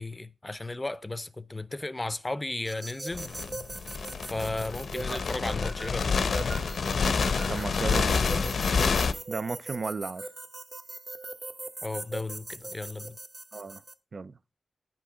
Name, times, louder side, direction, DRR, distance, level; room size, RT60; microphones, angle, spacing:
voice 1, 0.0-3.3 4.2-6.2 11.8-13.2, left 2 dB, 20° left, 0.6 m, -35 dB
sound 1, 2.6-13.9, right 2 dB, 30° right, 0.9 m, -41 dB
sound 2, 3.1-9.1, left 5 dB, 90° left, 0.8 m, -28 dB
voice 2, 7.5-8.3 9.3-10.3 13.5-13.8 14.1-14.4, right 4 dB, 50° right, 0.4 m, -34 dB
10.0 x 6.0 x 4.9 m
wide cardioid pair, 130°, 0 cm